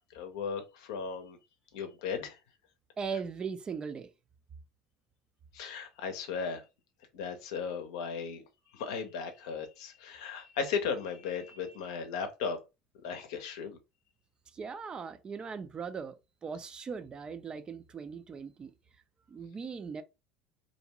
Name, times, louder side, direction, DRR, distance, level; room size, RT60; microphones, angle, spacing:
voice 1, 0.1-1.4 1.7-2.4 5.5-6.6 7.1-8.4 8.7-12.6 13.0-13.8, left 6 dB, 75° left, 0.6 m, -36 dB
voice 2, 3.0-4.1 14.5-16.1 16.4-18.7 19.3-20.0, right 5 dB, 30° right, 0.4 m, -39 dB
2.6 x 2.2 x 2.9 m
hypercardioid pair, 75°, 3 cm